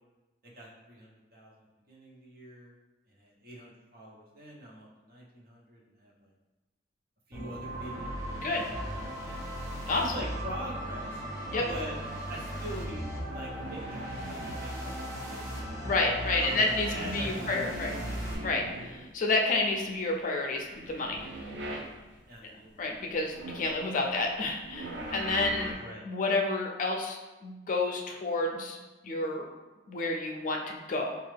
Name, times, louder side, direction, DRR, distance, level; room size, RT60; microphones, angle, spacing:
voice 1, 0.4-2.7 3.1-6.3 7.3-9.6 10.0-11.2 11.7-11.9 12.3-13.1 13.3-15.7 16.4-18.2 18.7-19.1 22.3-22.7 25.7-26.0, equal, 55° right, -4 dB, 0.9 m, -44 dB
sound 1, 7.3-18.3, right 1 dB, 15° right, 0.8 m, -37 dB
sound 2, 13.1-14.6 15.2-16.2 16.5-19.4 19.6-22.4 22.8-25.7, right 1 dB, 75° right, 0.5 m, -42 dB
voice 2, 15.8-17.9 18.4-21.3 22.4-22.5 22.8-25.8 26.0-28.8 29.0-29.5 29.9-31.1, left 2 dB, 45° left, 1 dB, 0.4 m, -30 dB
4.4 x 2.4 x 3.3 m, 1.1 s
head